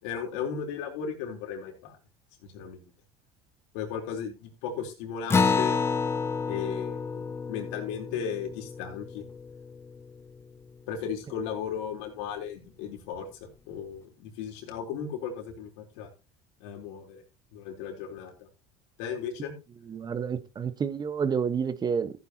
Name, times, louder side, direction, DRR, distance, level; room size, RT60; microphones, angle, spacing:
voice 1, 0.0-2.0 2.4-2.8 3.7-5.8 6.5-9.2 10.9-16.1 16.6-17.2 17.5-18.5 19.0-19.5, left 7 dB, 80° left, 3.9 m, -36 dB
Acoustic guitar, 5.3-10.2, left 5 dB, 20° left, 0.8 m, -29 dB
voice 2, 19.9-22.2, right 6 dB, 30° right, 1.3 m, -29 dB
14.5 x 9.5 x 3.0 m
supercardioid pair, 115°, 14 cm